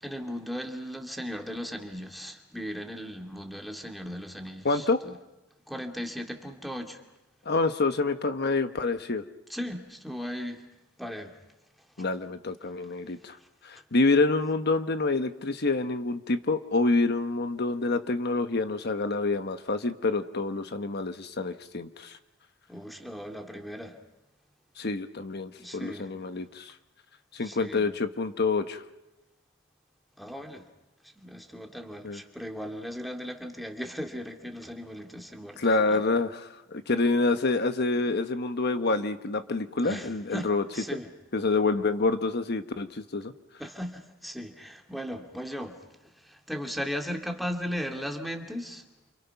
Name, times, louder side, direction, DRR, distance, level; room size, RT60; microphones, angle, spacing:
voice 1, 0.0-5.1 5.7-7.0 9.5-10.6 11.0-11.3 22.7-23.9 25.6-26.1 27.4-27.9 30.2-30.7 31.2-35.6 35.9-36.0 39.8-41.1 43.6-45.8 46.2-48.8, equal, ahead, 3 dB, 2.5 m, -37 dB
voice 2, 4.6-5.0 7.4-9.2 12.0-13.4 13.6-22.2 24.8-26.7 27.3-28.8 32.0-32.2 35.6-40.6 41.3-43.3, left 3 dB, 55° left, 9 dB, 1.1 m, -27 dB
29.5 x 28.5 x 5.9 m, 1.0 s
head